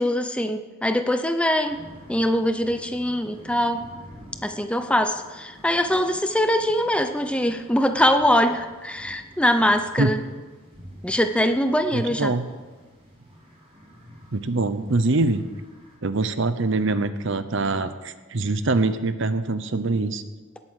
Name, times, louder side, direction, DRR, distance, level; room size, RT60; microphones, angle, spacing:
voice 1, 0.0-1.8 2.1-3.8 4.4-10.2 11.0-12.3, equal, 5° left, 8 dB, 0.6 m, -22 dB
sound 1, 1.7-16.0, equal, 25° right, 5.8 m, -48 dB
voice 2, 11.9-12.5 14.3-15.4 16.0-20.2, right 3 dB, 55° right, 11 dB, 0.8 m, -24 dB
18.5 x 8.4 x 6.4 m, 1.3 s
head